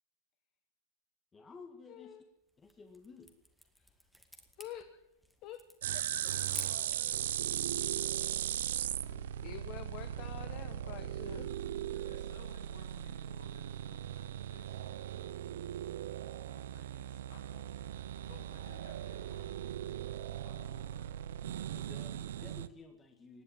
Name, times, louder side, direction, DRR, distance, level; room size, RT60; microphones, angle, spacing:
voice 1, 1.3-2.2 2.6-3.4 21.7-23.4, left 4 dB, 15° left, 5 dB, 1.7 m, -53 dB
voice 2, 1.9-2.3 3.8-3.9 4.6-5.0 5.4-5.6 5.9-6.1 9.1-11.5 20.7-20.8, left 11 dB, 45° left, 9 dB, 1.2 m, -48 dB
sound 1, 2.5-7.2, equal, ahead, 1.8 m, -50 dB
sound 2, 5.8-22.7, right 11 dB, 80° right, 0.7 m, -38 dB
voice 3, 6.0-8.4 11.2-11.5 11.9-15.0 16.3-17.8 18.2-19.7 20.3-21.1, left 5 dB, 70° left, 0 dB, 6.6 m, -60 dB
19.5 x 7.8 x 8.9 m, 0.85 s
supercardioid pair, 130°, 0 cm